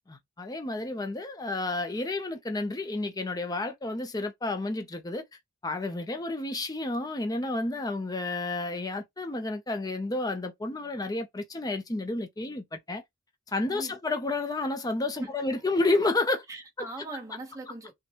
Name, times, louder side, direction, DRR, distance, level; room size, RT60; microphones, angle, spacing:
voice 1, 0.1-5.2 5.6-13.0 13.5-16.4, left 2 dB, 15° left, 0.5 m, -30 dB
voice 2, 13.7-14.0 15.2-15.5 16.5-17.9, right 2 dB, 15° right, 0.9 m, -40 dB
6.0 x 2.2 x 2.9 m
head